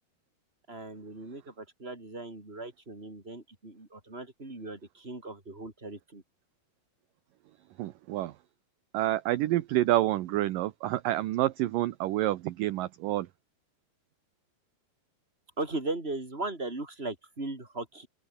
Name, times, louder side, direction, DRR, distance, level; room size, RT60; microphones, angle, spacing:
voice 1, 0.7-6.2 10.3-10.5 15.6-18.1, right 2 dB, 15° right, 5.2 m, -38 dB
voice 2, 7.8-8.3 8.9-13.3, right 15 dB, 70° right, 2.3 m, -28 dB
open air
omnidirectional pair, 4.7 m